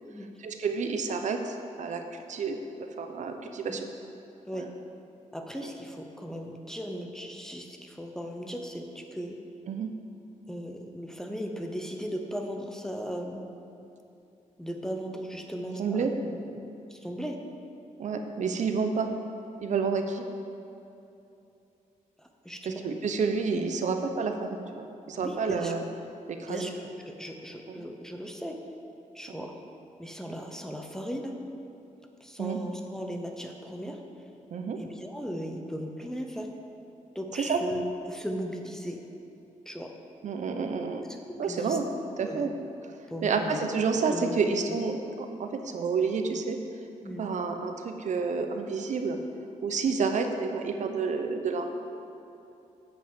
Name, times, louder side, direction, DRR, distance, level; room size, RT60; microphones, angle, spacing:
voice 1, 0.4-2.0 2.3-2.6 3.0-3.9 4.5-4.7 5.6-5.7 9.7-9.9 15.8-16.1 18.0-19.1 19.6-20.2 22.7-25.8 26.3-26.7 29.3-29.5 32.4-32.6 34.5-34.8 37.4-37.6 40.2-41.0 41.4-41.9 42.2-42.5 43.2-46.6 47.2-49.2 49.6-51.7, right 5 dB, 65° right, 5 dB, 0.7 m, -29 dB
voice 2, 5.3-9.4 10.5-13.5 14.6-17.4 22.2-22.8 25.2-25.7 26.5-28.6 29.1-29.5 30.0-31.3 32.2-34.0 34.8-36.5 37.1-39.1 39.7-39.9 41.3-41.8 42.2-42.5 43.1-43.6 44.1-44.8 47.0-47.3, equal, 5° left, 2 dB, 0.8 m, -37 dB
8.6 x 5.5 x 7.2 m, 2.8 s
wide cardioid pair, 125°, 13 cm